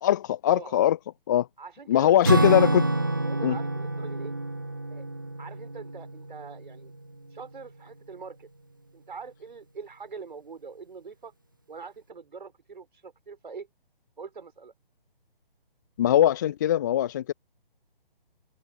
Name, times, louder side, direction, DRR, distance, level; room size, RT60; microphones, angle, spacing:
voice 1, 0.0-1.0 1.3-1.5 1.9-2.8 3.4-3.6 16.0-17.3, left 11 dB, 20° left, 0.8 m, -21 dB
voice 2, 1.6-2.7 3.2-4.3 4.9-5.0 5.4-6.9 7.3-8.5 8.9-11.3 11.7-13.7 14.2-14.7, right 5 dB, 55° right, 5.4 m, -43 dB
Acoustic guitar / Strum, 2.2-7.0, right 2 dB, 25° right, 0.3 m, -27 dB
figure-of-eight pair, 145°, 29 cm